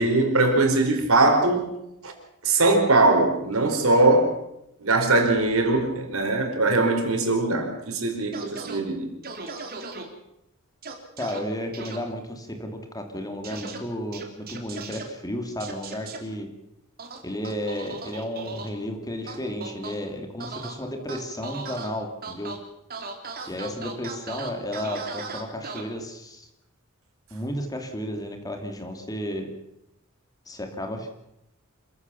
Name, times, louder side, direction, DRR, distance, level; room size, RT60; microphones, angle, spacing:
voice 1, 0.0-1.7 2.0-2.1 2.4-4.3 4.8-9.1, right 2 dB, 85° right, 4 dB, 4.6 m, -21 dB
sound 1, 8.3-8.8 9.2-10.0 10.8-11.4 11.7-12.0 13.4-13.8 14.1-15.0 15.6-16.2 17.0-18.7 19.3-20.0 20.4-20.7 21.1-21.9 22.2-22.6 22.9-25.8, right 4 dB, 45° right, 3.2 m, -37 dB
voice 2, 11.2-16.5 17.2-22.5 23.5-26.5 27.3-29.5 30.5-31.2, equal, 20° left, 4 dB, 2.7 m, -33 dB
27.0 x 15.0 x 7.1 m, 0.83 s
head